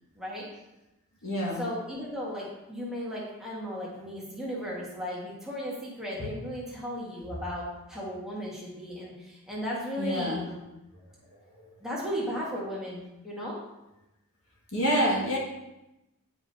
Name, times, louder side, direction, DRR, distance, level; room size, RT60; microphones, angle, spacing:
voice 1, 0.2-0.5 1.6-10.6 11.8-13.6, equal, ahead, -6 dB, 1.5 m, -35 dB
voice 2, 1.2-1.6 10.0-10.4 14.7-15.4, equal, 80° left, -3 dB, 1.6 m, -27 dB
9.5 x 4.9 x 2.7 m, 0.95 s
head